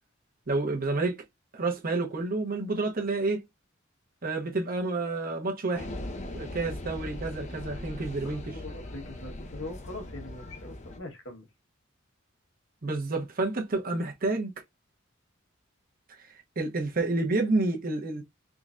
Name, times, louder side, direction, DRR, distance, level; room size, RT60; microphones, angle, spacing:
voice 1, 0.5-1.2 1.5-3.4 4.2-5.9 6.3-8.4 12.8-14.5 16.6-18.2, right 2 dB, 45° right, 1.0 m, -29 dB
sound 1, 5.7-11.0, left 1 dB, 35° left, 0.6 m, -39 dB
voice 2, 8.2-11.5, left 2 dB, 70° left, 1.5 m, -42 dB
3.8 x 3.2 x 2.6 m
head